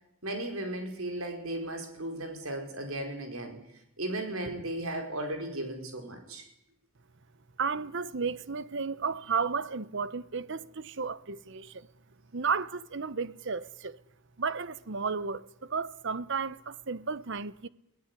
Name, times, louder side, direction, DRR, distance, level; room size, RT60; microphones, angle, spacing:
voice 1, 0.2-3.6 4.0-6.5, right 1 dB, 75° right, 5.0 m, -35 dB
voice 2, 7.6-11.9 12.3-14.0 14.4-17.7, right 5 dB, 55° right, 0.9 m, -33 dB
20.0 x 18.5 x 9.9 m
head